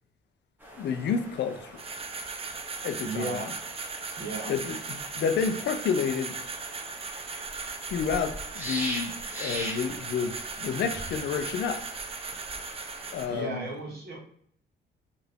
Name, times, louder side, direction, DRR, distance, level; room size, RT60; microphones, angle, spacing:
sound 1, 0.6-13.4, equal, 10° right, 0.9 m, -42 dB
voice 1, 0.8-1.8 2.8-3.4 4.5-6.4 7.9-11.8 13.1-13.6, left 6 dB, 60° left, 0.5 m, -30 dB
sound 2, 1.8-13.3, right 4 dB, 30° right, 0.4 m, -38 dB
voice 2, 3.0-3.5 4.1-4.5 13.3-14.2, right 3 dB, 50° right, 1.4 m, -35 dB
2.8 x 2.5 x 3.3 m
cardioid pair, 90°, 20 cm